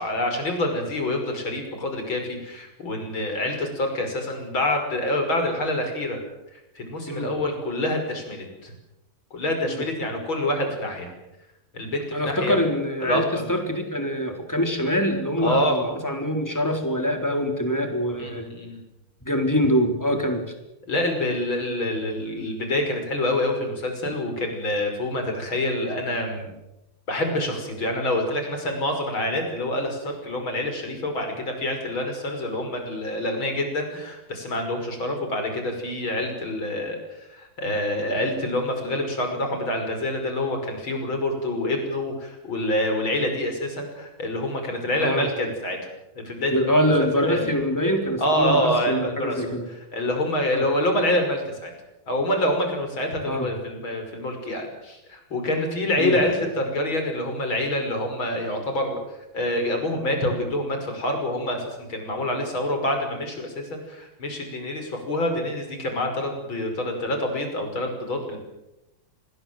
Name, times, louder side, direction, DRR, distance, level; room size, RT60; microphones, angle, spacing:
voice 1, 0.0-6.2 6.5-8.7 9.3-11.1 11.7-12.6 13.0-13.4 15.4-15.8 18.2-18.8 20.9-26.5 27.1-45.8 46.1-46.7 47.0-47.5 48.2-49.5 49.9-51.7 52.1-59.0 59.3-68.4, left 1 dB, 75° left, 4 dB, 6.5 m, -26 dB
voice 2, 12.1-18.5 19.2-20.5 45.0-45.3 46.5-49.6 50.5-50.7 53.3-53.5 56.0-56.2, equal, 10° left, 4 dB, 3.9 m, -24 dB
26.5 x 21.0 x 7.8 m, 0.94 s
omnidirectional pair, 2.2 m